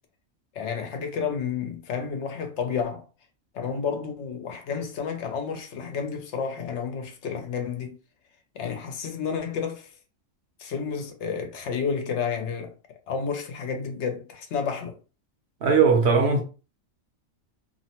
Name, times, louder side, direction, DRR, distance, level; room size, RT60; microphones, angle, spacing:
voice 1, 0.5-3.0 3.5-8.0 8.5-9.9 10.6-12.7 13.1-15.0, left 6 dB, 65° left, 0.8 m, -31 dB
voice 2, 15.6-16.4, right 5 dB, 60° right, 1.0 m, -19 dB
2.7 x 2.0 x 2.8 m
omnidirectional pair, 1.4 m